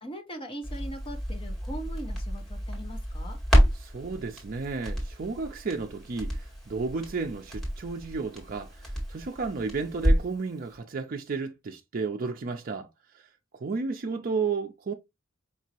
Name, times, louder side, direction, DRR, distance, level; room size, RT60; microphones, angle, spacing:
voice 1, 0.0-3.4, right 1 dB, 25° left, 1.0 m, -40 dB
Crackle, 0.6-10.4 10.7-10.8, equal, ahead, 1.8 m, -29 dB
voice 2, 3.8-12.9 13.6-14.9, right 4 dB, 45° right, 0.4 m, -32 dB
5.2 x 2.8 x 2.8 m
head